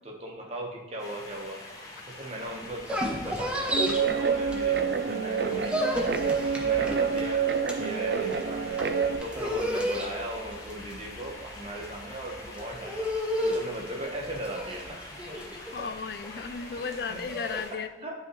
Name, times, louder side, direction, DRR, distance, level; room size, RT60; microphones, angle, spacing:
voice 1, 0.0-1.6 2.1-6.0 6.6-8.8 9.2-13.1 13.4-15.9 16.8-17.2 18.0-18.1, right 1 dB, 35° right, -1 dB, 1.2 m, -38 dB
sound 1, 1.0-17.7, left 2 dB, 20° left, 1.2 m, -45 dB
sound 2, 2.7-5.0 5.3-17.6, equal, 5° right, 0.8 m, -32 dB
Guitar, 3.7-9.2, right 6 dB, 65° right, 0.5 m, -27 dB
voice 2, 15.7-18.1, left 5 dB, 60° left, 12 dB, 0.4 m, -35 dB
9.9 x 5.6 x 3.1 m, 1.2 s
head